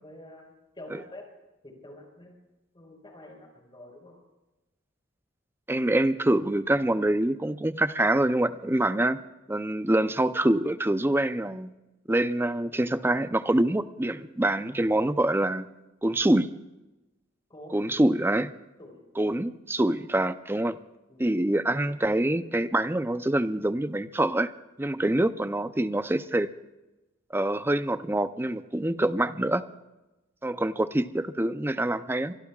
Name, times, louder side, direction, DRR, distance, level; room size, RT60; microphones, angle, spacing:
voice 1, 0.0-1.3 1.6-2.3 2.7-4.2 17.5-17.8 18.8-19.0 21.1-21.3, left 1 dB, 25° left, 1 dB, 4.8 m, -47 dB
voice 2, 5.7-9.2 9.5-11.7 12.1-15.7 16.0-16.5 17.7-18.5 19.2-20.8 21.2-24.5 24.8-26.5 27.3-29.6 30.4-32.4, right 1 dB, 10° right, 12 dB, 0.6 m, -25 dB
25.0 x 23.5 x 2.4 m, 1.0 s
head